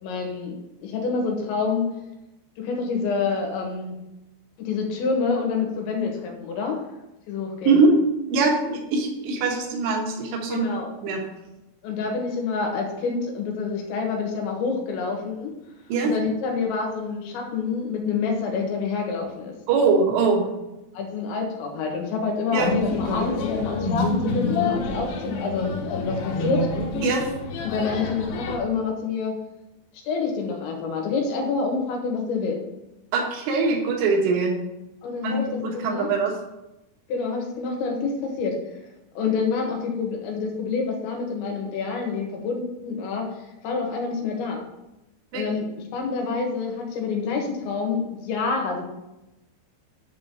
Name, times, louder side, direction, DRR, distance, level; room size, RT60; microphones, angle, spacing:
voice 1, 0.0-1.9 2.6-4.0 4.6-6.8 7.3-7.8 10.5-11.0 11.8-15.5 16.0-19.5 20.9-26.7 27.6-29.3 30.1-32.6 35.0-35.5 35.7-36.1 37.1-38.6 39.2-44.6 45.3-48.8, left 4 dB, 90° left, 1 dB, 3.8 m, -27 dB
voice 2, 8.3-10.7 11.0-11.2 15.9-16.1 19.7-20.5 22.5-22.7 27.0-27.3 33.1-34.5 35.2-36.3 45.3-45.4, right 4 dB, 75° right, 0 dB, 3.5 m, -22 dB
sound 1, 22.6-28.6, left 3 dB, 65° left, 2.9 m, -27 dB
10.0 x 3.8 x 6.8 m, 0.95 s
omnidirectional pair, 5.1 m